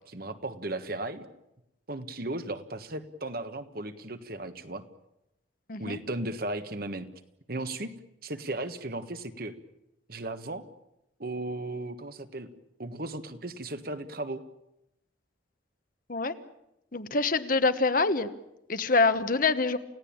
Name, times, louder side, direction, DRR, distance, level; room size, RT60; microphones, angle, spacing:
voice 1, 0.1-1.3 1.9-4.8 5.8-7.1 7.5-7.9 8.2-9.5 10.1-10.6 11.2-12.5 12.8-14.4, right 2 dB, 50° right, 9 dB, 1.5 m, -36 dB
voice 2, 16.9-18.3 18.7-19.8, left 3 dB, 45° left, 11 dB, 1.2 m, -25 dB
29.0 x 17.0 x 8.8 m, 0.87 s
head